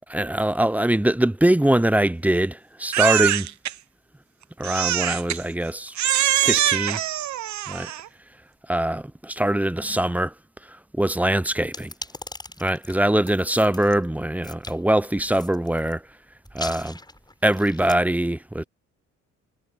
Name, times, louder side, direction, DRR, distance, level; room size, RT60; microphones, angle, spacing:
voice 1, 0.1-3.5 4.6-5.9 6.4-7.0 7.7-7.9 8.7-10.3 10.9-11.9 12.6-16.0 16.5-17.0 17.4-18.6, right 1 dB, 5° right, 0.7 m, -22 dB
Crying sobbing, 2.9-3.7 4.6-5.4 6.0-8.1, right 12 dB, 70° right, 1.0 m, -23 dB
sound 1, 11.7-14.0 14.4-14.8 15.3-15.9 16.4-18.0, left 2 dB, 15° left, 7.8 m, -39 dB
cardioid pair, 90°, 30 cm